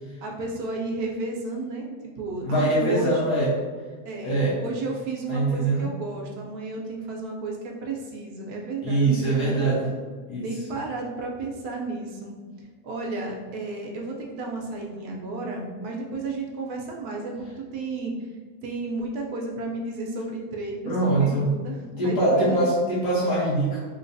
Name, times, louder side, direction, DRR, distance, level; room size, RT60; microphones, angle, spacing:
voice 1, 0.2-3.2 4.0-9.8 10.4-12.4 12.8-18.3 18.6-22.7, right 3 dB, 70° right, 0 dB, 1.0 m, -33 dB
voice 2, 2.4-3.5 4.2-4.5 5.3-5.9 8.8-9.9 10.3-10.5 20.9-21.5 22.0-23.9, right 2 dB, 80° left, -8 dB, 1.6 m, -23 dB
3.8 x 2.7 x 2.6 m, 1.5 s
omnidirectional pair, 1.8 m